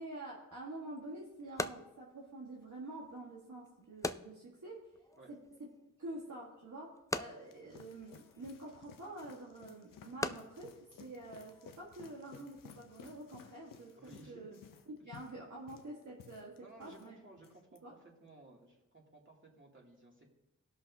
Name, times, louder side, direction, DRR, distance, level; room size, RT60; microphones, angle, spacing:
voice 1, 0.0-4.9 5.3-5.4 6.0-14.5 15.0-17.1 17.8-17.9, right 2 dB, 65° right, -4 dB, 1.6 m, -47 dB
sound 1, 0.5-11.9, left 2 dB, 10° left, 0.4 m, -45 dB
sound 2, 7.3-17.1 17.4-17.8, left 7 dB, 90° left, 0.6 m, -57 dB
voice 2, 14.0-14.6 16.6-20.3, right 2 dB, 40° right, -3 dB, 2.6 m, -57 dB
18.0 x 6.3 x 2.7 m, 0.97 s
cardioid pair, 50°, 32 cm